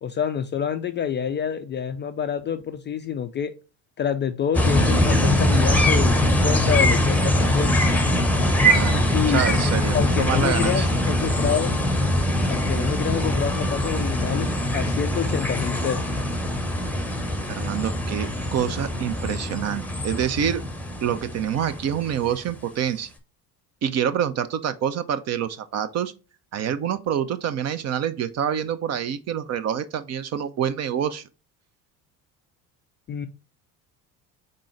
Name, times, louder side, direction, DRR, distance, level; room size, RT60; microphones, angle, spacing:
voice 1, 0.0-3.5 4.0-7.8 9.1-9.4 9.9-11.8 12.5-16.0 33.1-33.3, left 8 dB, 25° left, 0.3 m, -27 dB
sound 1, 4.5-22.5, left 1 dB, 5° left, 0.8 m, -22 dB
voice 2, 8.6-10.9 17.5-20.6 21.0-23.1 23.8-26.1 26.5-31.2, right 9 dB, 35° right, 0.4 m, -27 dB
3.8 x 3.8 x 3.1 m
hypercardioid pair, 60°, 49 cm